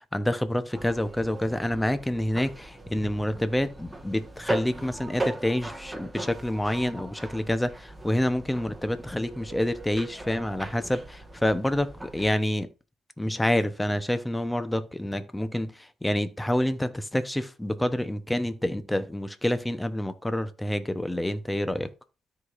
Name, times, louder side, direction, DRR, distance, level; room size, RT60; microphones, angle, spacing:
voice 1, 0.1-12.7 13.2-21.9, left 1 dB, 10° left, 0.9 m, -28 dB
sound 1, 0.7-12.3, right 2 dB, 10° right, 1.5 m, -39 dB
13.0 x 4.9 x 2.6 m
cardioid pair, 90°, 0 cm